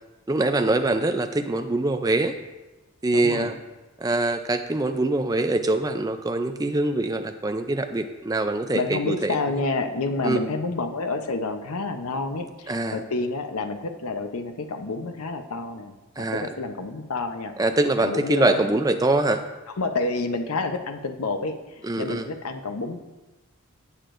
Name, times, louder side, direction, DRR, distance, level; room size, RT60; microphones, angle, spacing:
voice 1, 0.3-2.3 3.0-3.6 4.0-9.4 10.2-10.4 12.7-13.0 16.2-16.5 17.6-19.4 21.8-22.3, right 2 dB, 15° right, 7 dB, 0.4 m, -24 dB
voice 2, 3.1-3.5 8.7-17.5 18.0-18.6 19.8-23.0, left 3 dB, 80° left, 7 dB, 0.7 m, -29 dB
17.0 x 6.6 x 2.6 m, 1.1 s
head